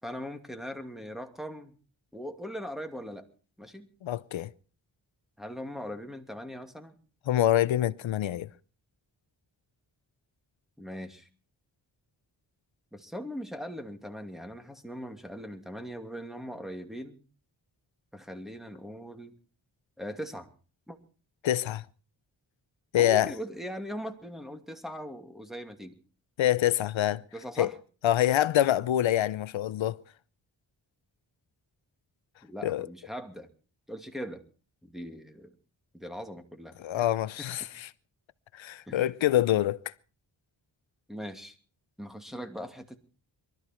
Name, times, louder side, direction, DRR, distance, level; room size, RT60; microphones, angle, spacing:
voice 1, 0.0-1.8 2.1-3.2 3.6-3.9 5.4-7.0 10.8-11.3 12.9-17.2 18.1-19.3 20.0-20.5 20.9-21.0 23.0-26.0 27.3-27.7 32.4-33.5 33.9-34.4 34.8-35.5 35.9-37.1 37.4-37.5 38.9-39.1 41.1-41.6 42.0-43.0, equal, ahead, 2.5 m, -40 dB
voice 2, 4.0-4.5 7.3-8.5 21.4-21.8 22.9-23.3 26.4-27.2 27.6-27.7 28.0-30.0 32.6-32.9 36.8-37.9 38.5-39.8, left 12 dB, 90° left, 0.7 m, -25 dB
23.0 x 13.5 x 4.5 m
cardioid pair, 65°, 45 cm